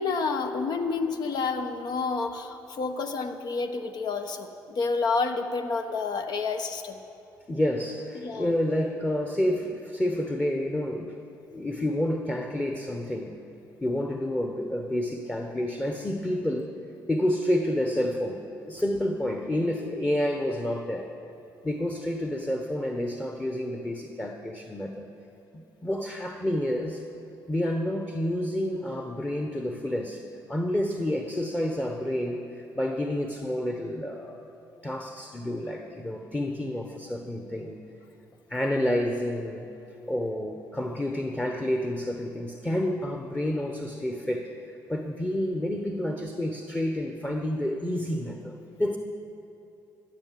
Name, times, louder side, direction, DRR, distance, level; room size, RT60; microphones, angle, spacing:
voice 1, 0.0-7.0 8.1-8.5, left 4 dB, 65° left, 6 dB, 1.2 m, -29 dB
voice 2, 7.5-11.2 11.5-13.4 13.8-16.7 17.1-21.1 21.6-25.1 25.5-27.1 27.5-30.2 30.5-34.4 34.8-37.8 38.5-39.6 40.1-49.0, left 1 dB, 15° left, 4 dB, 1.0 m, -29 dB
13.0 x 10.5 x 7.6 m, 2.8 s
cardioid pair, 90°, 8 cm